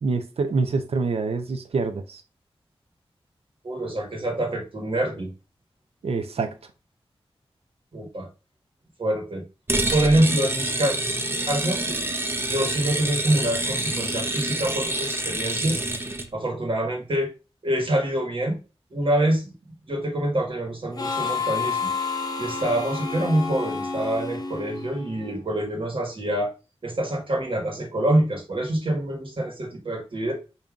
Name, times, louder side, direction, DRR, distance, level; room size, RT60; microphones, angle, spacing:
voice 1, 0.0-2.2 6.0-6.5, right 4 dB, 75° right, 0.5 m, -26 dB
voice 2, 3.6-5.3 7.9-8.3 9.0-9.4 9.9-10.9 11.5-12.1 12.5-15.8 16.3-17.3 17.6-18.6 18.9-19.5 19.9-21.9 22.4-26.5 26.8-30.3, right 1 dB, 60° right, 1.4 m, -25 dB
sound 1, 9.7-16.3, right 1 dB, 20° right, 0.5 m, -27 dB
Harmonica, 21.0-25.4, left 5 dB, 40° left, 0.7 m, -30 dB
5.1 x 2.7 x 2.4 m
wide cardioid pair, 95°, 10 cm